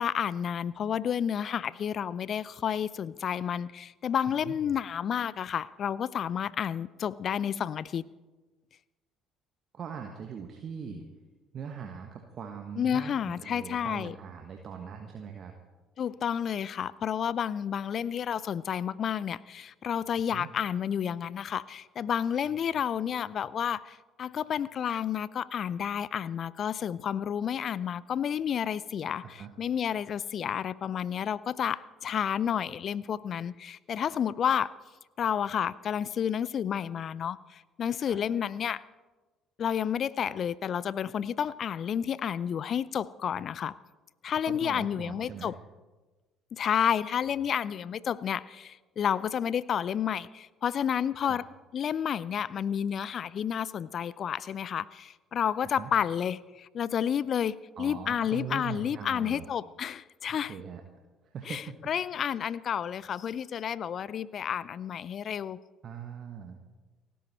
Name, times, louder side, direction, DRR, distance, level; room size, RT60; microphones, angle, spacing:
voice 1, 0.0-8.0 12.8-14.2 16.0-34.7 35.2-38.8 39.6-43.7 44.2-45.6 46.5-51.4 51.7-60.5 61.5-61.6 61.9-65.6, left 8 dB, 50° left, 21 dB, 0.5 m, -30 dB
voice 2, 9.7-11.0 11.5-15.5 20.3-20.5 29.2-29.5 38.1-38.2 44.5-45.5 51.2-51.4 55.6-55.9 57.8-59.5 60.3-60.8 61.3-61.8 65.8-66.6, right 7 dB, 45° right, 4 dB, 1.5 m, -41 dB
30.0 x 10.0 x 4.3 m, 1.2 s
figure-of-eight pair, 50°, 0 cm